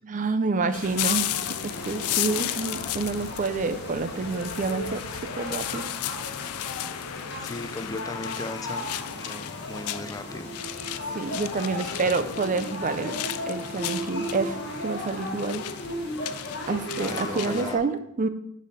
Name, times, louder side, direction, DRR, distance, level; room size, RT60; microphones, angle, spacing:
voice 1, 0.1-5.0 5.3-5.8 11.1-15.7 16.7-18.3, right 4 dB, 35° right, 11 dB, 0.5 m, -28 dB
sound 1, 0.7-17.8, left 1 dB, 50° left, 1.4 m, -36 dB
sound 2, 1.0-17.6, left 13 dB, 85° left, 0.4 m, -34 dB
voice 2, 7.4-10.5 17.0-17.8, left 2 dB, 15° left, 8 dB, 0.5 m, -37 dB
9.7 x 4.2 x 5.5 m, 0.77 s
head